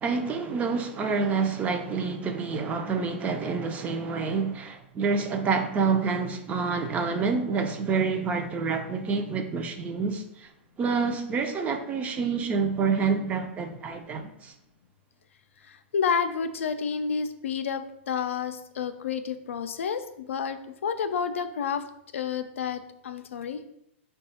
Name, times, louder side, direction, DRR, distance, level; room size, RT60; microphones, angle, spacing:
voice 1, 0.0-10.5 10.8-14.5, right 5 dB, 20° right, 0.4 m, -27 dB
voice 2, 15.6-21.9 22.1-23.6, left 6 dB, 90° left, 0.4 m, -30 dB
4.6 x 2.3 x 4.1 m
hypercardioid pair, 135°, 7 cm